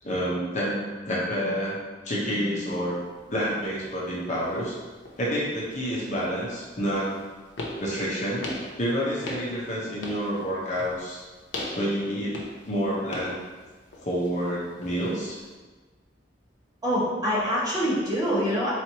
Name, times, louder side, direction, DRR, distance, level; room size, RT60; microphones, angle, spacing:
voice 1, 0.0-1.8 2.0-3.0 3.3-4.7 5.2-7.1 7.8-8.4 8.8-11.2 11.8-12.4 12.6-13.3 14.0-15.4, equal, 40° left, -5 dB, 0.8 m, -28 dB
sound 1, 2.6-15.5, left 1 dB, 90° left, 0.7 m, -41 dB
voice 2, 16.8-18.7, equal, 20° right, -8 dB, 1.1 m, -25 dB
4.1 x 3.1 x 2.9 m, 1.3 s
head